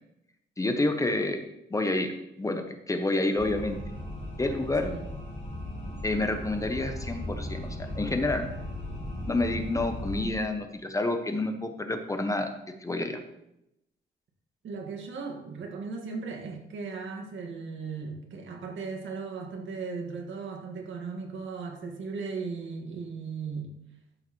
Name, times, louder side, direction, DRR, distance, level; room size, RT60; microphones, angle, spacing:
voice 1, 0.6-1.4 1.7-2.1 2.4-3.8 4.4-4.9 6.0-8.5 9.3-12.5 12.8-13.2, left 2 dB, 15° left, 6 dB, 0.7 m, -28 dB
sound 1, 3.4-10.3, left 1 dB, 65° left, 2.7 m, -37 dB
voice 2, 14.6-23.8, right 4 dB, 75° right, 2 dB, 1.8 m, -37 dB
12.5 x 6.5 x 3.1 m, 0.84 s
wide cardioid pair, 150°, 20 cm